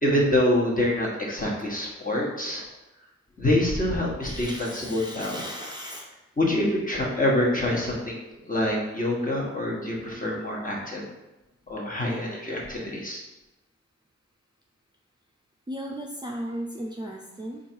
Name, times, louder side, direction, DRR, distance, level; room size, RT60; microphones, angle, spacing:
voice 1, 0.0-2.6 3.4-5.4 6.4-8.2 8.5-11.0 11.7-13.2, left 1 dB, 30° left, -3 dB, 1.3 m, -26 dB
voice 2, 4.2-6.1 15.7-17.6, equal, 15° right, -1 dB, 0.5 m, -36 dB
4.5 x 2.6 x 4.5 m, 1.0 s
cardioid pair, 60°, 29 cm